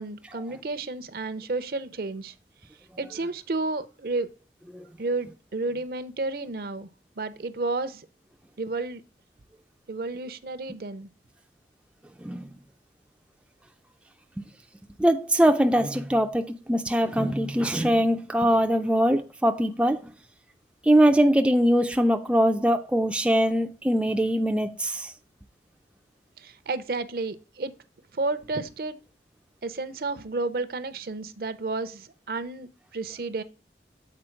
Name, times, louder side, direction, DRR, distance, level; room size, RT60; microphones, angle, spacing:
voice 1, 0.0-2.3 3.0-4.3 5.0-6.9 7.2-8.1 8.6-9.0 9.9-11.1 26.4-27.7 28.1-29.0 29.6-33.4, right 3 dB, 55° right, 0.6 m, -31 dB
voice 2, 15.0-20.1 20.8-25.1, equal, 5° right, 0.3 m, -22 dB
7.5 x 4.4 x 4.4 m
head